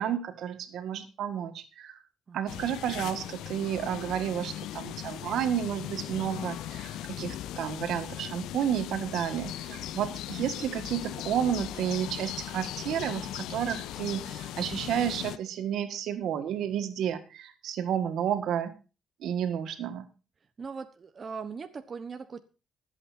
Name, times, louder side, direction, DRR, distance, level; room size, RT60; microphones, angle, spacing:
voice 1, 0.0-2.0 2.3-18.7 19.2-20.0, right 9 dB, 80° right, 8 dB, 1.8 m, -31 dB
voice 2, 2.3-2.6 9.7-9.9 20.6-22.4, right 5 dB, 40° right, 7 dB, 1.2 m, -40 dB
sound 1, 2.5-15.4, left 13 dB, 90° left, 0.5 m, -38 dB
24.0 x 8.5 x 2.7 m, 0.32 s
cardioid pair, 90°, 0 cm